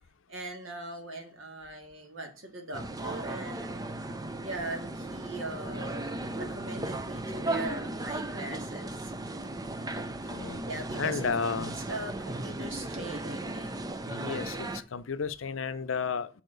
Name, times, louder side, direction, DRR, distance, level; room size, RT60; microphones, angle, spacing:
voice 1, 0.3-3.9 4.4-9.1 10.7-11.2 11.9-13.7, right 2 dB, 80° right, 2.1 m, -40 dB
sound 1, 2.7-14.8, right 2 dB, 20° right, 0.5 m, -36 dB
voice 2, 10.3-10.6 10.9-11.8 14.1-16.4, left 5 dB, 80° left, 0.6 m, -33 dB
7.3 x 6.7 x 3.9 m
head